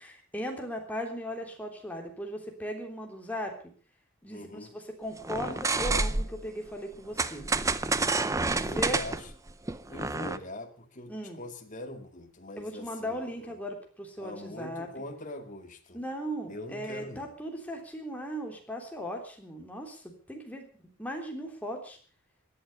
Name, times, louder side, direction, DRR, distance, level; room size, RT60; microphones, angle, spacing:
voice 1, 0.0-3.6 4.2-7.5 8.5-9.0 11.1-11.4 12.6-15.0 15.9-20.7 21.0-22.0, equal, 5° left, 2 dB, 3.4 m, -37 dB
voice 2, 4.3-4.7 8.3-9.3 9.9-13.6 14.2-16.0 16.5-17.3, left 2 dB, 35° left, 5 dB, 2.2 m, -43 dB
sound 1, 5.2-6.5 7.2-10.4, right 3 dB, 15° right, 0.7 m, -29 dB
17.5 x 11.5 x 6.7 m, 0.43 s
head